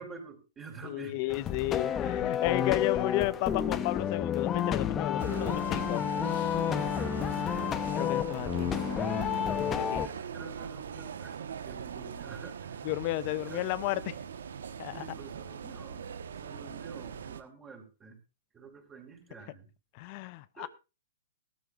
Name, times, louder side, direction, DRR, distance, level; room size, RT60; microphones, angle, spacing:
voice 1, 0.0-1.4 2.1-2.2 6.6-7.7 9.5-12.8 13.3-13.7 14.9-16.1 16.4-18.2 18.5-19.7 20.6-20.7, right 4 dB, 15° right, 4.6 m, -49 dB
voice 2, 0.8-6.6 7.9-8.7 9.5-10.1 12.8-14.2 14.8-15.0 19.9-20.7, left 18 dB, 40° left, 0.7 m, -33 dB
sound 1, 1.3-10.1, left 9 dB, 20° left, 0.9 m, -30 dB
sound 2, 5.2-17.4, right 7 dB, 80° right, 1.3 m, -41 dB
17.5 x 13.5 x 2.6 m
hypercardioid pair, 140°, 0 cm